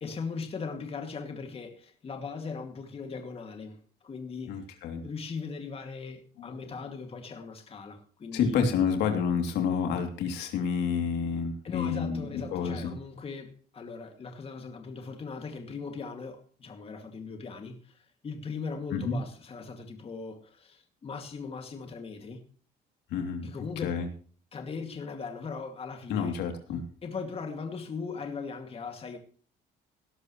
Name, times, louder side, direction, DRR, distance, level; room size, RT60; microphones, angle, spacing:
voice 1, 0.0-4.6 5.0-8.6 11.6-22.4 23.4-24.0 24.5-26.3 27.0-29.2, left 5 dB, 35° left, 2.4 m, -39 dB
voice 2, 4.5-5.0 6.4-6.6 8.3-12.9 18.9-19.2 23.1-23.5 23.8-24.1 26.1-26.8, left 6 dB, 80° left, 3.0 m, -29 dB
18.0 x 12.0 x 3.2 m
cardioid pair, 110°, 17 cm